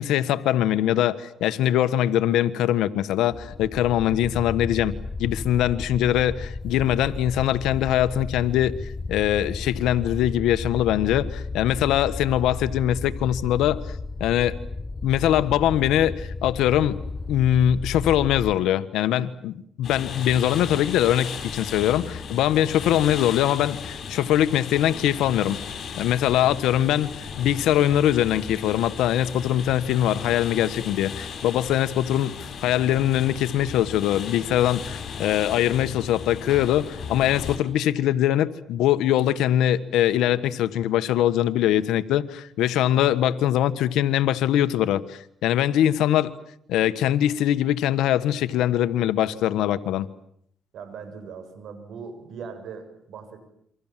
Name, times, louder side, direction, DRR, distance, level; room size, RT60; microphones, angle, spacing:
voice 1, 0.0-4.9 5.2-8.7 9.1-13.8 14.2-14.6 15.0-17.0 17.3-25.6 26.0-46.3 46.7-50.1, left 11 dB, 90° left, 13 dB, 1.4 m, -22 dB
sound 1, 3.3-18.6, left 3 dB, 20° left, 1.3 m, -33 dB
sound 2, 19.8-37.6, left 6 dB, 60° left, 6.2 m, -36 dB
voice 2, 50.7-53.5, right 5 dB, 70° right, 9 dB, 7.2 m, -40 dB
28.5 x 25.0 x 7.6 m, 0.70 s
cardioid pair, 90°, 0 cm